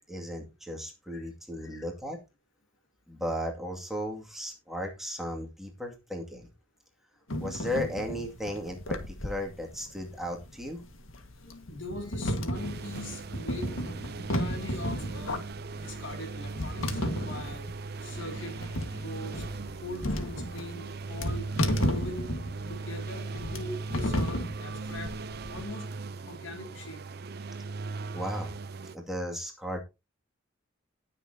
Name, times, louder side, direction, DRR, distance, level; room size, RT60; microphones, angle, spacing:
voice 1, 0.0-2.2 3.1-6.5 7.4-10.8 28.1-28.6 28.9-29.8, equal, ahead, 1 dB, 2.2 m, -35 dB
voice 2, 1.6-1.9 11.4-15.4 15.7-17.7 18.0-18.6 18.9-19.4 19.8-21.5 21.9-22.3 22.7-25.1 25.5-25.9 26.3-27.0 27.6-27.7, left 1 dB, 70° left, 4 dB, 2.7 m, -42 dB
sound 1, 7.3-25.6, left 1 dB, 90° left, 1.8 m, -34 dB
sound 2, 12.5-29.0, right 4 dB, 50° right, 0.6 m, -39 dB
19.0 x 6.8 x 2.8 m, 0.25 s
head